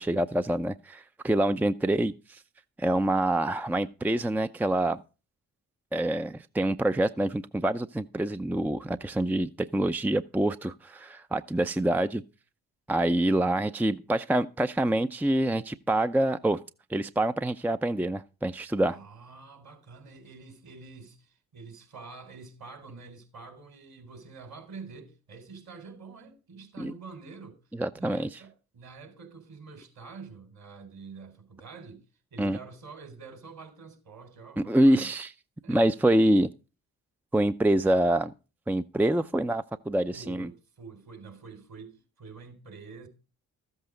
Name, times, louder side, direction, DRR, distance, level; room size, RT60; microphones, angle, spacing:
voice 1, 0.0-2.4 2.8-5.0 5.9-12.2 12.9-16.6 16.9-19.0 26.8-26.9 27.7-28.3 32.4-32.6 34.6-35.3 35.7-36.5 37.3-38.3 38.7-40.5, right 1 dB, 5° right, 0.6 m, -26 dB
voice 2, 18.8-27.6 27.9-32.0 32.3-35.1 35.6-35.8 40.1-43.1, right 4 dB, 60° right, 3.9 m, -47 dB
13.5 x 8.1 x 5.1 m
hypercardioid pair, 40°, 41 cm